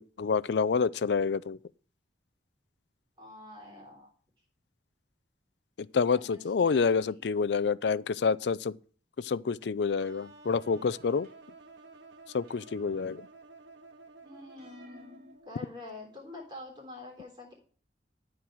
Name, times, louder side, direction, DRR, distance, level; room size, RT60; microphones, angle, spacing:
voice 1, 0.0-1.6 5.8-8.8 9.2-11.3 12.3-13.3, left 5 dB, 70° left, 0.4 m, -28 dB
voice 2, 3.2-4.1 6.1-7.2 14.2-17.5, left 2 dB, 25° right, 3.5 m, -47 dB
sound 1, 10.0-15.8, right 3 dB, 90° right, 1.3 m, -53 dB
sound 2, 11.2-11.7 12.5-13.4 14.6-15.4, left 1 dB, 55° right, 3.3 m, -57 dB
13.0 x 4.7 x 7.5 m
head